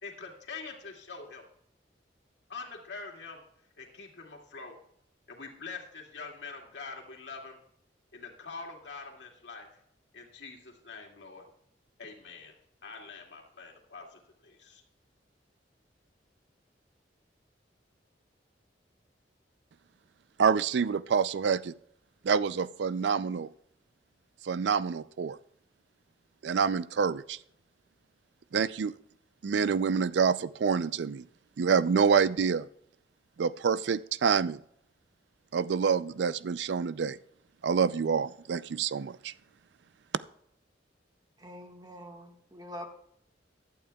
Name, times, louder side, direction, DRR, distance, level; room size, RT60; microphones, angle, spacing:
voice 1, 0.0-1.4 2.5-3.4 3.8-4.8 5.3-7.6 8.1-9.7 10.1-11.4 12.0-12.5 12.8-14.8, left 4 dB, 70° left, 0 dB, 2.3 m, -44 dB
voice 2, 20.4-21.7 22.2-23.5 24.4-25.4 26.4-27.4 28.5-28.9 29.4-31.3 31.6-32.7 33.4-34.6 35.5-37.2 37.6-39.3, right 6 dB, 70° right, 17 dB, 0.4 m, -27 dB
voice 3, 41.4-42.9, equal, 20° right, 3 dB, 1.5 m, -44 dB
15.5 x 11.5 x 2.3 m, 0.70 s
head